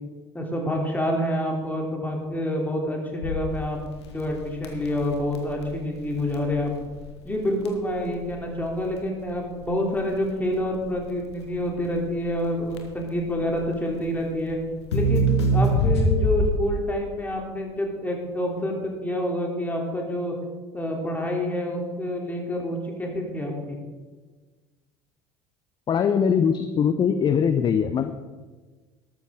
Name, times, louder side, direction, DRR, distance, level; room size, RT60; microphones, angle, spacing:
voice 1, 0.3-3.8 4.1-6.7 7.2-14.6 14.9-20.3 20.7-23.8, left 1 dB, 10° left, 0 dB, 3.0 m, -27 dB
Crackle, 3.2-16.8, right 1 dB, 75° left, 1.6 m, -27 dB
voice 2, 25.9-28.1, left 7 dB, 30° left, 10 dB, 0.7 m, -21 dB
13.0 x 13.0 x 3.7 m, 1.3 s
figure-of-eight pair, 65°, 14 cm